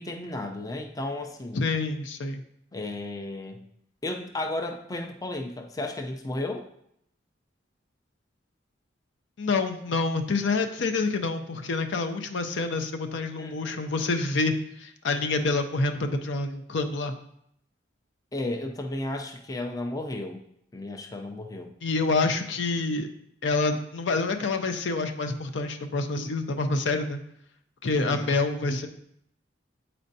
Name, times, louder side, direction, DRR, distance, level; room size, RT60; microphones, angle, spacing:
voice 1, 0.0-1.6 2.7-3.6 4.0-6.6 13.4-13.8 18.3-20.4 20.7-21.7 27.9-28.3, left 2 dB, 20° left, 3 dB, 0.4 m, -33 dB
voice 2, 1.6-2.4 9.4-17.1 21.8-23.1 23.4-27.2 27.8-28.9, left 3 dB, 75° left, 6 dB, 0.5 m, -27 dB
8.4 x 4.3 x 2.7 m, 0.72 s
head